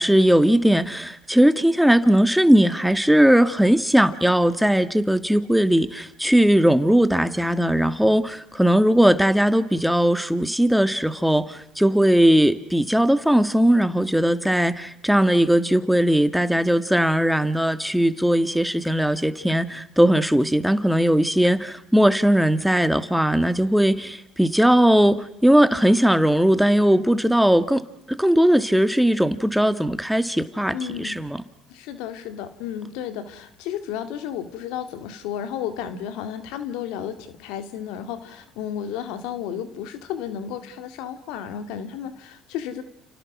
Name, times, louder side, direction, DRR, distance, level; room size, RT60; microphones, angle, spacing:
voice 1, 0.0-27.8 28.2-31.4, equal, ahead, 11 dB, 2.0 m, -19 dB
voice 2, 30.7-31.2 31.7-42.8, left 9 dB, 75° left, 10 dB, 2.3 m, -33 dB
30.0 x 29.5 x 6.2 m, 0.76 s
hypercardioid pair, 65°, 0 cm